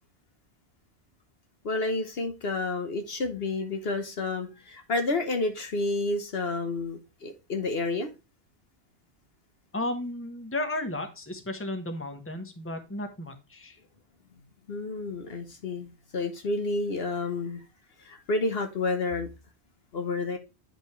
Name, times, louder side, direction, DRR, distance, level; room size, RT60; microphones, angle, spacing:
voice 1, 1.6-8.1 14.7-17.6 18.0-19.3 19.9-20.4, left 3 dB, 60° left, 6 dB, 1.2 m, -30 dB
voice 2, 9.7-13.8, left 1 dB, 10° left, 6 dB, 1.1 m, -34 dB
8.8 x 5.3 x 3.1 m, 0.28 s
omnidirectional pair, 1.2 m